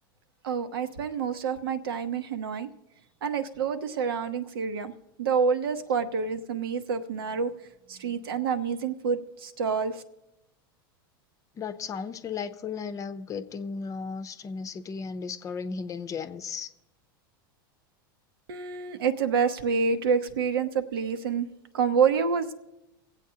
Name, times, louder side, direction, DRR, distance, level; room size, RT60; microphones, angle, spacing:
voice 1, 0.4-2.7 3.2-4.9 5.2-7.5 7.9-10.0 18.5-21.5 21.7-22.5, right 6 dB, 80° right, 8 dB, 0.9 m, -27 dB
voice 2, 11.6-16.7, left 5 dB, 30° left, 11 dB, 0.7 m, -35 dB
23.5 x 8.1 x 2.8 m, 0.92 s
hypercardioid pair, 110°, 12 cm